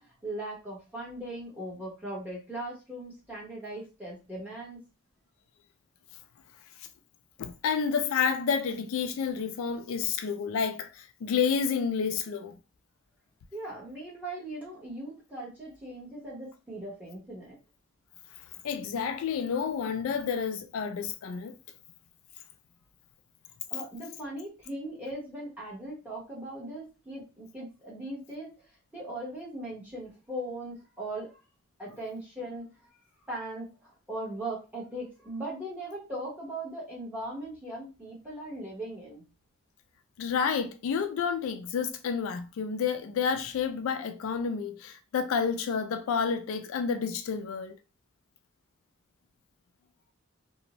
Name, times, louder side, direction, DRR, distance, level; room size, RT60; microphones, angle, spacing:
voice 1, 0.0-4.8 13.5-17.6 23.7-28.5 28.9-31.4 31.8-32.7 33.3-39.2, right 1 dB, 10° right, 0.9 m, -39 dB
voice 2, 7.4-12.6 18.6-21.6 40.2-47.8, left 6 dB, 75° left, 0.3 m, -30 dB
2.5 x 2.0 x 2.9 m
head